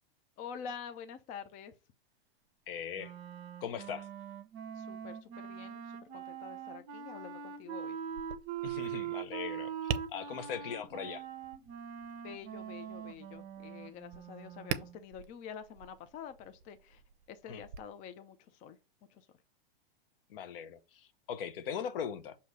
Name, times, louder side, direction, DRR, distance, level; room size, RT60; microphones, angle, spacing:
voice 1, 0.4-1.7 4.7-8.0 12.2-17.0 17.3-18.8 19.1-19.3, left 7 dB, 25° left, 0.5 m, -47 dB
voice 2, 2.7-3.1 3.6-4.1 8.6-11.2 17.5-17.6 20.3-22.4, left 8 dB, 65° left, 1.0 m, -40 dB
Wind instrument woodwind instrument, 3.0-15.0, right 9 dB, 35° right, 0.9 m, -43 dB
Tap, 8.1-17.8, right 8 dB, 60° right, 0.7 m, -45 dB
6.4 x 2.8 x 5.3 m
hypercardioid pair, 130°, 31 cm